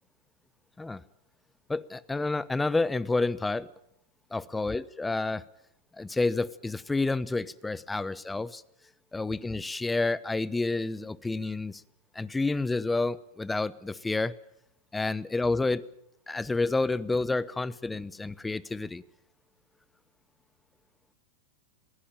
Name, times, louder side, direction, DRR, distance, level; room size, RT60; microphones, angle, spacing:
voice 1, 1.7-3.7 4.3-5.4 6.0-8.6 9.1-11.8 12.1-14.3 14.9-15.8 16.3-19.0, left 3 dB, 10° left, 18 dB, 0.8 m, -29 dB
21.5 x 15.5 x 8.9 m, 0.82 s
hypercardioid pair, 120°, 0 cm